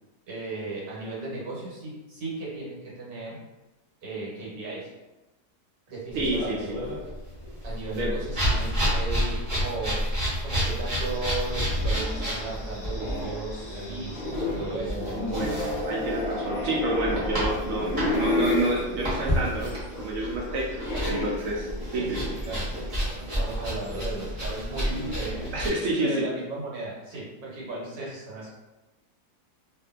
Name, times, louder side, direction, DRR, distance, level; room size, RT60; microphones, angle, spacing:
voice 1, 0.3-3.4 4.0-4.9 5.9-6.7 7.6-10.0 10.4-15.5 20.9-21.1 21.9-23.0 23.3-25.5 26.0-28.5, right 3 dB, 85° right, -5 dB, 1.4 m, -36 dB
Saddler Working Leather, 6.1-25.7, equal, 35° right, 0.8 m, -31 dB
voice 2, 6.1-6.8 7.9-8.1 15.1-19.7 20.0-20.8 21.0-22.3 25.5-26.3, right 1 dB, 65° right, -3 dB, 0.8 m, -29 dB
sound 1, 10.7-22.9 23.3-23.4 24.5-25.7, left 2 dB, 70° left, 0.4 m, -33 dB
2.5 x 2.5 x 2.3 m, 1.0 s
omnidirectional pair, 1.8 m